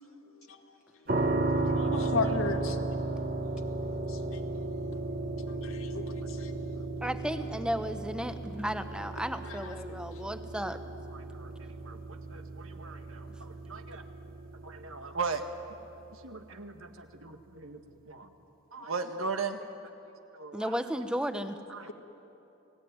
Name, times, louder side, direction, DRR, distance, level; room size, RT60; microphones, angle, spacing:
sound 1, 1.1-15.9, right 2 dB, 45° right, 1.4 m, -34 dB
voice 1, 1.7-2.8 4.1-4.4 5.5-6.5, left 4 dB, 85° left, 4 dB, 1.7 m, -34 dB
voice 2, 7.0-10.8 20.5-21.6, equal, 5° right, 9 dB, 0.9 m, -34 dB
voice 3, 11.1-14.0 14.6-15.7 16.1-18.3 18.7-19.6 20.3-20.8 21.7-21.9, right 4 dB, 90° right, 6 dB, 1.8 m, -38 dB
30.0 x 18.0 x 9.5 m, 2.9 s
head